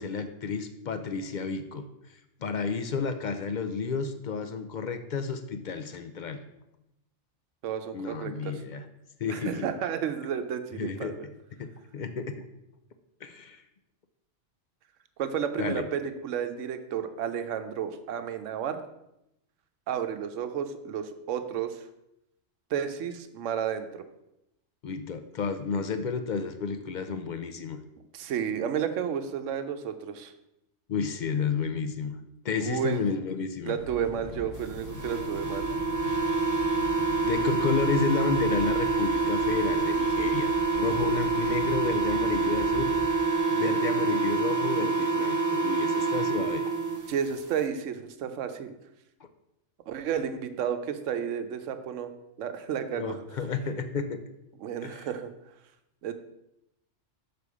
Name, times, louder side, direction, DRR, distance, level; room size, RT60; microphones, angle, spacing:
voice 1, 0.0-1.9 2.4-6.4 7.9-8.8 9.2-9.7 10.7-11.1 11.6-12.3 13.2-13.6 15.6-15.8 24.8-27.8 30.9-32.1 32.4-33.8 37.2-43.3 43.5-46.6 49.2-49.3 53.0-54.2 54.8-55.1, left 5 dB, 60° left, 8 dB, 0.5 m, -31 dB
voice 2, 7.6-8.6 9.3-11.3 15.2-18.8 19.9-21.8 22.7-24.0 28.1-30.3 32.6-33.0 33.7-35.7 47.1-48.7 49.9-52.1 52.4-53.2 54.6-55.3 56.0-56.1, right 8 dB, 80° right, 9 dB, 1.0 m, -32 dB
sound 1, 33.7-43.1, left 2 dB, 90° left, 1.1 m, -42 dB
sound 2, 34.9-47.0, right 4 dB, 20° right, 0.5 m, -27 dB
6.7 x 4.3 x 4.8 m, 0.86 s
omnidirectional pair, 1.3 m